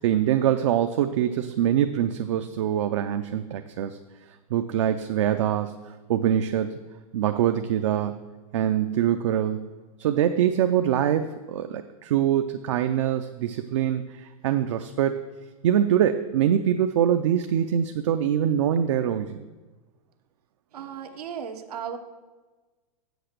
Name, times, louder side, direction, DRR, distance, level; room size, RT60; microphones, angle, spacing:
voice 1, 0.0-4.0 4.5-5.8 6.1-6.7 7.1-8.2 8.5-9.6 10.0-15.2 15.6-19.4, right 10 dB, 50° right, 8 dB, 0.4 m, -24 dB
voice 2, 20.7-22.0, right 8 dB, 85° right, 7 dB, 1.1 m, -35 dB
7.9 x 6.5 x 6.5 m, 1.3 s
supercardioid pair, 170°, 19 cm